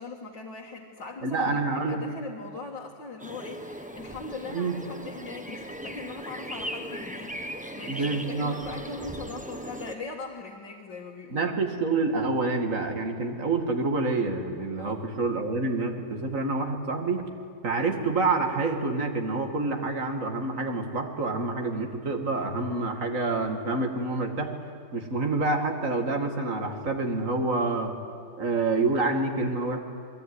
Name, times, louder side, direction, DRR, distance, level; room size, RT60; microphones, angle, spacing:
voice 1, 0.0-11.5 14.8-15.0, left 3 dB, 85° left, -2 dB, 2.5 m, -40 dB
voice 2, 1.2-2.1 4.5-4.8 7.9-8.6 11.3-17.2 17.6-24.5 24.9-27.9 28.4-29.8, right 3 dB, 45° right, 4 dB, 2.6 m, -27 dB
sound 1, 3.2-10.0, equal, 5° right, 1.0 m, -38 dB
29.0 x 20.5 x 9.9 m, 2.3 s
omnidirectional pair, 2.0 m